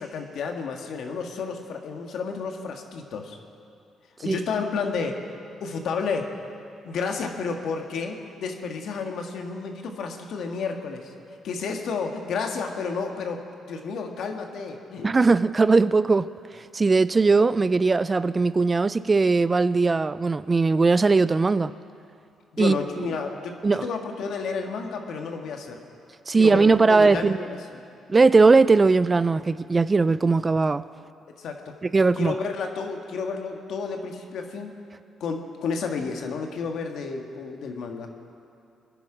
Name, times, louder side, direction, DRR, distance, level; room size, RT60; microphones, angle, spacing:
voice 1, 0.0-3.4 4.2-5.2 5.6-6.3 6.8-11.1 11.4-13.4 13.7-15.1 22.5-25.8 26.3-27.6 31.3-31.8 32.1-34.7 35.2-38.1, left 5 dB, 70° left, 4 dB, 1.6 m, -31 dB
voice 2, 15.0-16.3 16.7-21.7 22.6-23.1 23.6-23.9 26.3-27.4 28.1-30.8 31.8-32.3, right 4 dB, 25° right, 16 dB, 0.3 m, -19 dB
22.0 x 10.5 x 5.0 m, 2.5 s
cardioid pair, 90°, 0 cm